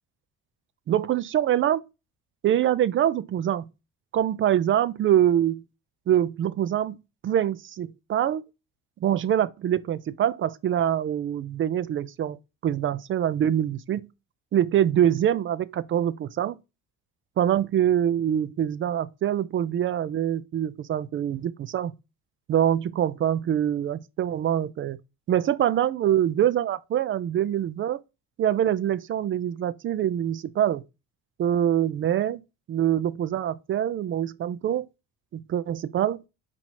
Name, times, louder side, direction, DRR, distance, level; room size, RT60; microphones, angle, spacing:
voice 1, 0.9-1.8 2.4-3.7 4.1-5.6 6.1-7.0 7.2-8.4 9.0-14.1 14.5-16.6 17.4-21.9 22.5-25.0 25.3-28.0 28.4-30.8 31.4-32.4 32.7-34.9 35.3-36.2, right 10 dB, 40° right, 0.4 m, -24 dB
4.3 x 2.7 x 4.4 m
cardioid pair, 115°, 33 cm